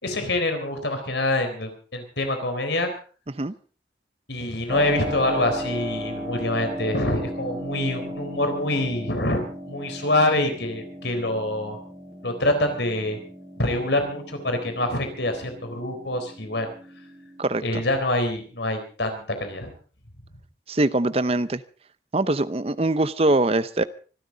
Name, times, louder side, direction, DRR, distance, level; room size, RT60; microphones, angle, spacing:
voice 1, 0.0-2.9 4.3-11.8 12.2-13.2 13.6-16.7 17.6-19.7, left 1 dB, 75° left, 7 dB, 4.0 m, -25 dB
Keyboard (musical), 4.7-17.4, equal, 5° right, 7.1 m, -36 dB
voice 2, 17.4-17.8 20.7-21.6 22.1-23.8, right 2 dB, 35° right, 14 dB, 0.7 m, -23 dB
25.0 x 12.5 x 3.9 m, 0.39 s
head